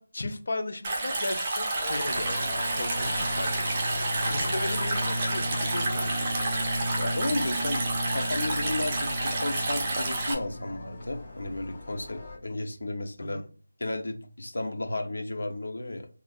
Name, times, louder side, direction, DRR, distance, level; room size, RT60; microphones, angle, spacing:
voice 1, 0.0-3.6 4.0-6.3 13.2-13.4, left 2 dB, 50° left, 7 dB, 0.5 m, -36 dB
Stream, 0.8-10.3, right 2 dB, 20° right, 0.5 m, -30 dB
sound 1, 1.7-12.4, left 2 dB, 20° left, 1.4 m, -44 dB
sound 2, 2.1-11.8, equal, 70° right, 0.5 m, -35 dB
voice 2, 4.2-4.5 7.0-13.4 13.8-16.1, left 2 dB, 75° left, 6 dB, 0.9 m, -33 dB
3.8 x 2.4 x 2.5 m, 0.39 s
figure-of-eight pair, 175°, 0 cm